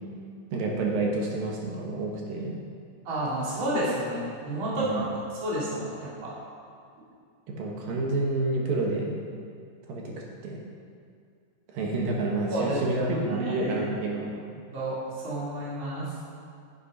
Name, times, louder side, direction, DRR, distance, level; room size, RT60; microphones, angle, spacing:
voice 1, 0.5-2.6 4.8-5.1 7.5-9.2 9.9-10.6 11.7-14.3, right 2 dB, 70° right, -1 dB, 2.9 m, -29 dB
voice 2, 3.0-4.9 5.3-6.3 12.5-13.8 14.7-15.0 15.2-16.1, right 1 dB, 35° right, -7 dB, 3.4 m, -30 dB
13.0 x 8.8 x 5.4 m, 2.3 s
omnidirectional pair, 4.4 m